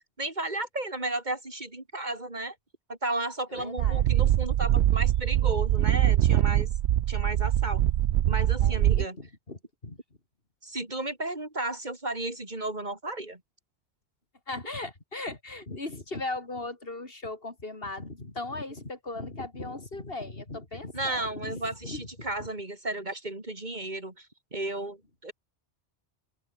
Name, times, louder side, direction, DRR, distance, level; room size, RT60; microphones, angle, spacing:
voice 1, 0.2-2.6 2.9-6.7 7.1-7.8 8.3-9.2 10.6-13.4 20.9-24.3 24.5-25.3, right 2 dB, 45° right, 4.1 m, -33 dB
voice 2, 3.5-4.1 8.6-10.0 14.5-22.5, left 2 dB, 60° left, 3.7 m, -38 dB
sound 1, 3.8-9.0, right 12 dB, 80° right, 0.9 m, -23 dB
omnidirectional pair, 1.1 m